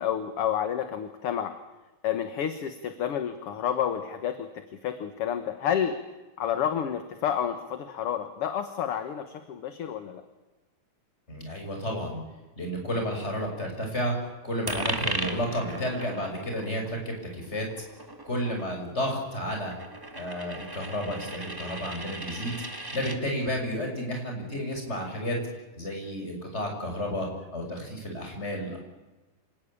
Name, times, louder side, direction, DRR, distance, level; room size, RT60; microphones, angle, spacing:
voice 1, 0.0-1.5 2.0-4.5 4.8-6.0 6.4-10.2, left 9 dB, 55° left, 8 dB, 2.1 m, -29 dB
voice 2, 11.3-12.2 12.6-14.1 14.4-17.7 18.2-19.7 20.1-22.6 22.9-25.4 25.8-28.8, equal, 20° left, 2 dB, 6.5 m, -31 dB
Coin (dropping), 14.7-23.2, right 1 dB, 10° right, 1.5 m, -37 dB
27.0 x 18.5 x 8.7 m, 1.1 s
omnidirectional pair, 3.3 m